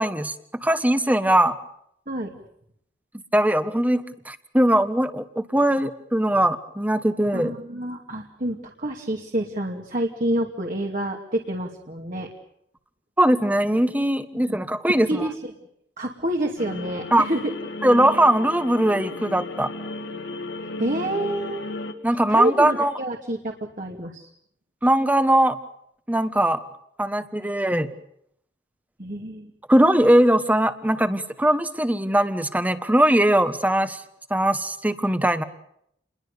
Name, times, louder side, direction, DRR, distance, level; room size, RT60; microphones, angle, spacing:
voice 1, 0.0-1.6 3.3-7.5 13.2-15.3 17.1-17.2 17.8-19.7 22.0-22.9 24.8-25.6 26.1-26.6 27.0-27.9 29.7-34.0 34.3-35.4, right 1 dB, 10° right, 11 dB, 1.4 m, -20 dB
voice 2, 2.1-2.4 7.3-12.3 14.3-14.6 15.0-15.3 16.0-17.4 20.8-21.6 22.3-24.3 29.0-29.5, right 1 dB, 50° right, 1 dB, 2.6 m, -28 dB
sound 1, 16.6-21.9, left 2 dB, 85° left, 2.6 m, -34 dB
29.5 x 22.0 x 6.8 m, 0.73 s
head